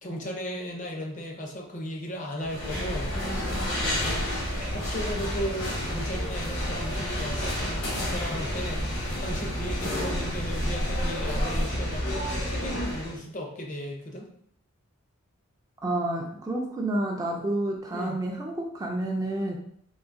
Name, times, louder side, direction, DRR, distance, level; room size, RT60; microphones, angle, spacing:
voice 1, 0.0-3.1 3.8-4.2 4.7-14.3 17.9-18.2, equal, 35° left, 1 dB, 0.6 m, -36 dB
sound 1, 2.4-13.2, equal, 55° left, 1.0 m, -30 dB
voice 2, 15.8-19.6, right 1 dB, 15° right, 0 dB, 0.3 m, -29 dB
3.8 x 2.5 x 2.5 m, 0.65 s
head